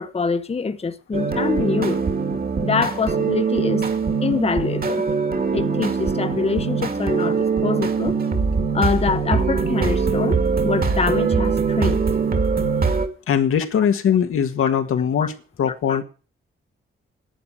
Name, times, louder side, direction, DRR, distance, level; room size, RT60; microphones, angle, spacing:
voice 1, 0.0-2.0 2.6-3.8 4.2-5.1 5.5-8.2 8.7-12.0 15.2-15.3 15.9-16.0, left 4 dB, 30° left, 0.8 m, -24 dB
sound 1, 1.1-13.1, right 5 dB, 45° right, 2.1 m, -22 dB
voice 2, 13.3-16.0, left 8 dB, 85° left, 1.7 m, -21 dB
11.0 x 8.2 x 8.6 m
cardioid pair, 110°, 21 cm